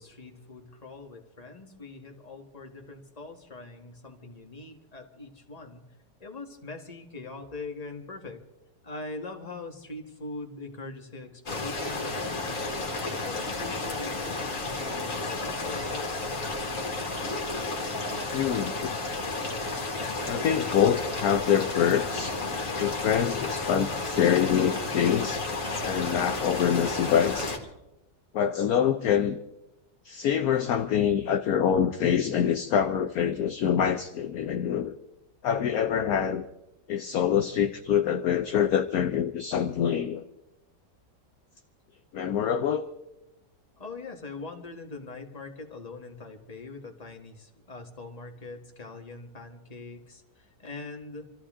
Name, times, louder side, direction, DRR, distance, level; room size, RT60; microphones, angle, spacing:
voice 1, 0.0-5.8 6.2-8.4 8.8-12.7 13.0-16.3 43.8-51.3, left 3 dB, 20° left, 2 dB, 1.7 m, -42 dB
sound 1, 11.5-27.6, left 3 dB, 50° left, 2.4 m, -32 dB
voice 2, 18.3-18.9 20.3-22.5 22.8-25.4 25.8-27.5 28.3-29.4 30.0-34.9 35.4-36.4 36.9-40.2 42.1-42.8, left 8 dB, 65° left, 8 dB, 1.1 m, -25 dB
26.5 x 14.5 x 3.7 m, 0.91 s
omnidirectional pair, 1.9 m